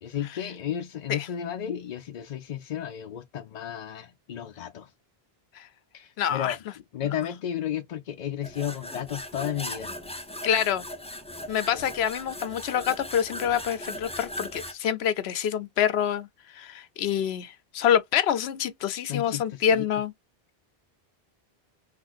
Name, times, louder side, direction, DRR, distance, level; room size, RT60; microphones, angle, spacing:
voice 1, 0.0-4.9 5.9-6.6 6.9-9.9 11.7-11.8 19.1-19.8, left 10 dB, 55° left, 0.5 m, -33 dB
voice 2, 6.2-6.6 10.4-10.8 11.5-16.3 16.5-20.1, left 9 dB, 90° left, 0.9 m, -26 dB
sound 1, 8.4-14.7, left 1 dB, 10° left, 0.5 m, -38 dB
6.0 x 2.4 x 2.5 m
omnidirectional pair, 1.0 m